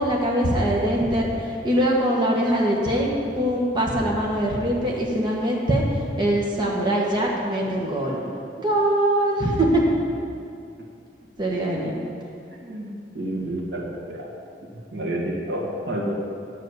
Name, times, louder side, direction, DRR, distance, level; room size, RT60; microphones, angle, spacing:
voice 1, 0.0-3.1 3.4-5.8 6.2-8.2 8.6-9.7 11.4-11.9, right 1 dB, 25° right, -3 dB, 1.4 m, -22 dB
voice 2, 12.6-14.3 14.7-16.1, right 1 dB, 85° right, -2 dB, 1.7 m, -30 dB
9.4 x 6.3 x 8.1 m, 2.4 s
head